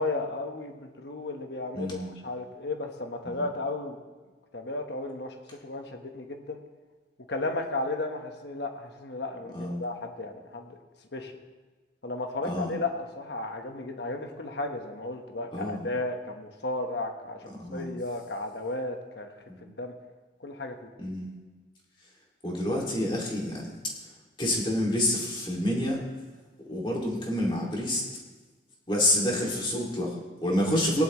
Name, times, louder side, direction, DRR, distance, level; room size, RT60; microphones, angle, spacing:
voice 1, 0.0-4.0 4.5-5.3 5.6-6.6 7.3-10.8 11.1-11.3 12.0-17.4 17.7-19.3 19.6-19.9 20.4-20.7, left 2 dB, 65° left, 4 dB, 1.2 m, -34 dB
voice 2, 1.7-2.1 3.2-3.4 9.5-9.8 12.4-12.7 15.5-15.9 17.5-17.9 19.5-19.6 21.0-21.3 22.4-23.7 24.4-26.0 26.7-28.0 28.9-31.0, left 1 dB, 25° left, -2 dB, 2.3 m, -28 dB
18.0 x 11.0 x 3.1 m, 1.3 s
head